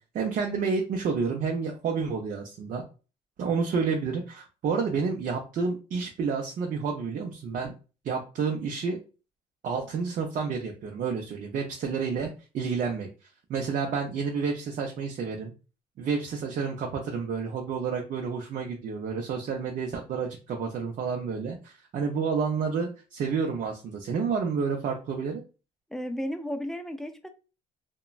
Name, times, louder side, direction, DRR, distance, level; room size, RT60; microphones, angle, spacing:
voice 1, 0.1-2.8 3.4-7.7 8.0-9.0 9.6-12.3 12.5-13.1 13.5-15.5 16.0-25.4, right 5 dB, 50° right, 0.5 m, -30 dB
voice 2, 25.9-27.3, equal, ahead, 0.3 m, -33 dB
2.9 x 2.2 x 2.3 m
cardioid pair, 110°, 17 cm